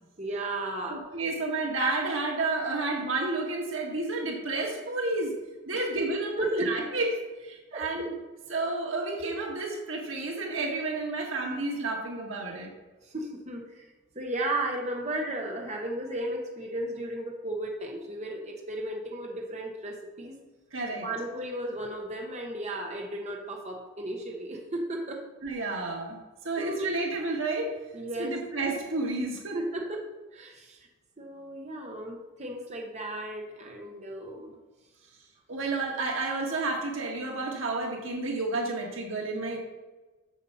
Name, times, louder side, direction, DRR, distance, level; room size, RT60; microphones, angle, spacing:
voice 1, 0.2-1.0 5.7-5.8 6.4-6.9 7.7-8.1 13.0-20.4 21.0-25.2 25.9-26.0 26.6-26.9 27.9-28.4 29.5-30.0 30.3-30.9 31.2-34.6, right 1 dB, 35° right, 1 dB, 1.2 m, -34 dB
voice 2, 0.9-5.3 5.7-7.1 7.4-8.1 8.5-12.7 20.7-21.0 25.4-26.2 26.4-27.7 28.2-29.6 35.5-39.6, right 3 dB, 80° right, 0 dB, 1.7 m, -31 dB
8.2 x 7.0 x 5.7 m, 1.2 s
head